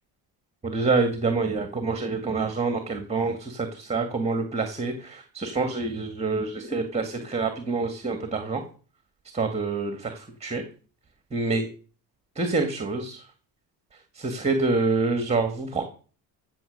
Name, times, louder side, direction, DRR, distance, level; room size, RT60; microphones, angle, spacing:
voice 1, 0.6-8.6 9.3-10.6 11.3-11.7 12.4-13.2 14.2-15.8, right 3 dB, 15° right, 7 dB, 1.8 m, -27 dB
15.5 x 7.2 x 6.6 m, 0.39 s
cardioid pair, 150°, 40 cm